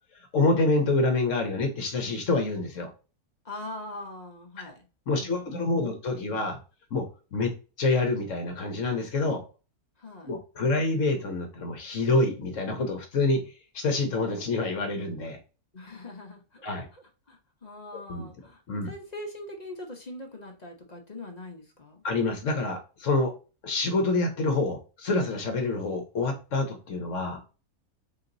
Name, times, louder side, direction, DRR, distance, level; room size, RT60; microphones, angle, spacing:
voice 1, 0.3-2.9 4.6-4.7 5.1-6.6 6.9-9.4 10.2-15.4 16.6-16.9 18.1-18.3 18.7-18.9 22.0-23.3 23.6-27.4, left 3 dB, 60° left, 1.1 m, -27 dB
voice 2, 3.4-4.9 5.1-6.4 10.0-10.3 15.7-22.0, left 1 dB, 35° left, 0.8 m, -42 dB
3.9 x 2.8 x 3.9 m
omnidirectional pair, 1.6 m